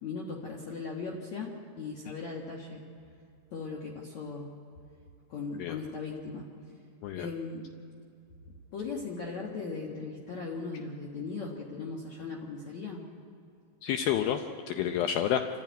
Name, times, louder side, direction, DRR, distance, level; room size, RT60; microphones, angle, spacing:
voice 1, 0.0-2.8 3.5-4.5 5.3-6.5 7.2-7.7 8.7-13.1, left 4 dB, 55° left, -2 dB, 2.1 m, -38 dB
voice 2, 13.8-15.4, left 10 dB, 85° left, 6 dB, 2.1 m, -29 dB
26.5 x 14.5 x 9.3 m, 2.5 s
omnidirectional pair, 5.2 m